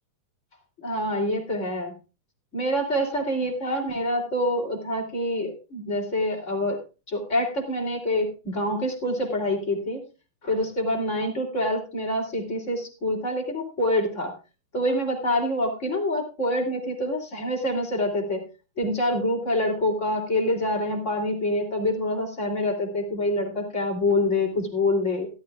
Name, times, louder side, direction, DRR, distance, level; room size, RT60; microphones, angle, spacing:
voice 1, 0.8-1.9 2.5-6.8 7.1-10.0 10.4-14.3 14.7-18.4 18.8-25.3, left 1 dB, 20° left, 0 dB, 2.8 m, -26 dB
16.5 x 13.0 x 2.5 m, 0.32 s
omnidirectional pair, 5.1 m